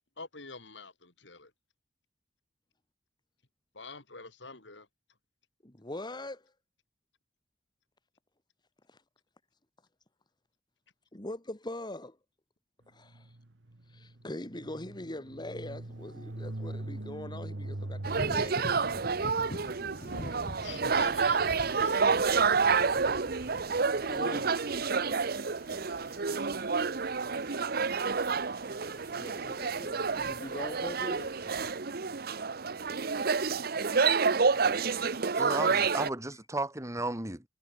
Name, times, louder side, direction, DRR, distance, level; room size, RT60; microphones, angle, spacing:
voice 1, 0.2-1.5 3.8-4.9 20.6-22.3 34.9-35.3, left 4 dB, 75° left, 4.0 m, -46 dB
voice 2, 5.6-6.5 8.9-9.0 11.1-12.2 12.9-13.4 13.8-18.8 24.0-24.8 29.1-31.4 32.0-32.5 36.3-36.4, left 1 dB, 25° left, 1.9 m, -43 dB
sound 1, 13.0-23.0, right 1 dB, 80° right, 1.6 m, -44 dB
sound 2, 18.0-31.7, left 1 dB, 45° left, 3.8 m, -46 dB
sound 3, 18.0-36.1, right 5 dB, 55° right, 0.9 m, -29 dB
voice 3, 35.4-37.4, right 2 dB, 15° right, 3.5 m, -34 dB
head